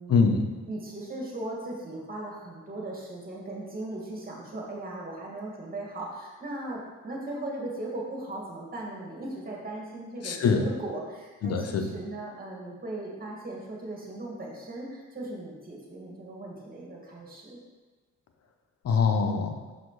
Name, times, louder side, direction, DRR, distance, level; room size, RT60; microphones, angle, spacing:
voice 1, 0.1-0.5 10.2-10.7 11.4-11.9 18.8-19.6, left 5 dB, 55° left, 5 dB, 0.8 m, -24 dB
voice 2, 0.7-17.6, right 2 dB, 30° right, -3 dB, 2.2 m, -38 dB
6.6 x 5.9 x 3.2 m, 1.3 s
cardioid pair, 90°, 30 cm